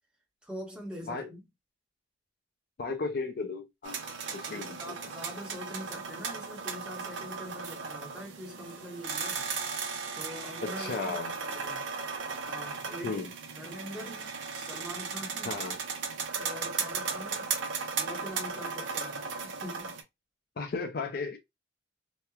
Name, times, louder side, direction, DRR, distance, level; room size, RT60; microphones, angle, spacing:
voice 1, 0.4-1.5 4.5-9.4 10.1-11.8 12.5-13.2 13.6-15.5 16.3-17.5 18.0-19.9, equal, 5° right, 0.8 m, -44 dB
voice 2, 2.8-4.9 10.6-11.4 13.0-13.3 15.5-15.8 20.6-21.4, left 4 dB, 50° left, 0.4 m, -35 dB
sound 1, 3.8-20.0, right 5 dB, 75° right, 0.6 m, -36 dB
3.0 x 2.1 x 2.3 m
head